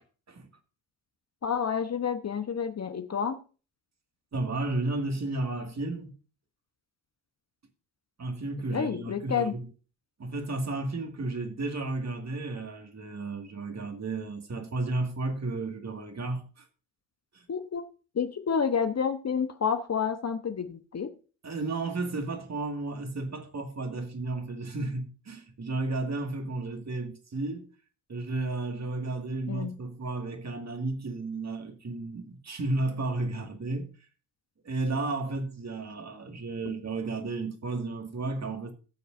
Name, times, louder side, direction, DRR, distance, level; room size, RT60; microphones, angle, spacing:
voice 1, 1.4-3.4 8.7-9.6 17.5-17.8 18.1-21.1 29.5-29.8, left 6 dB, 35° left, 1.0 m, -29 dB
voice 2, 4.3-6.1 8.2-9.6 10.2-16.7 17.3-17.5 21.4-27.7 28.1-33.9 34.6-38.7, right 2 dB, 35° right, 2.1 m, -33 dB
18.5 x 6.7 x 2.6 m
hypercardioid pair, 45°, 47 cm